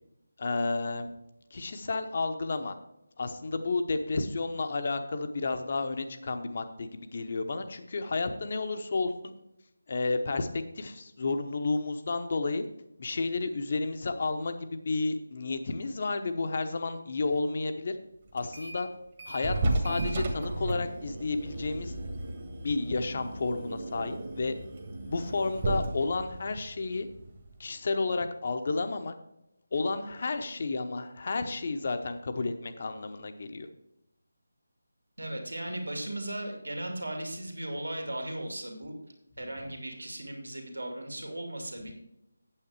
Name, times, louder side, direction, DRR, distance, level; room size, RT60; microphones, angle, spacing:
voice 1, 0.4-1.1 1.5-2.8 3.2-9.3 9.9-12.6 13.0-18.0 18.3-18.9 19.3-21.9 22.6-24.5 25.0-27.1 27.6-29.1 29.7-33.7, left 3 dB, 40° left, 8 dB, 0.9 m, -31 dB
sound 1, 18.4-18.9 19.2-27.6, right 2 dB, 30° right, 1.5 m, -34 dB
voice 2, 35.2-38.9 39.4-41.9, right 1 dB, 70° right, 3 dB, 2.3 m, -37 dB
8.8 x 8.1 x 4.7 m, 0.84 s
figure-of-eight pair, 155°, 0 cm